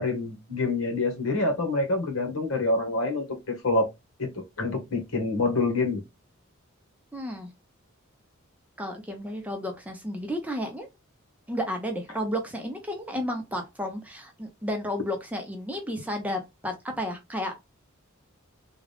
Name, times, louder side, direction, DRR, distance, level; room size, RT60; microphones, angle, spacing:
voice 1, 0.0-3.9 4.2-4.3 4.6-6.0, left 2 dB, 80° left, 1.5 m, -26 dB
voice 2, 7.1-7.5 8.8-10.9 11.5-17.7, equal, 5° right, 0.7 m, -32 dB
3.7 x 2.3 x 3.4 m
head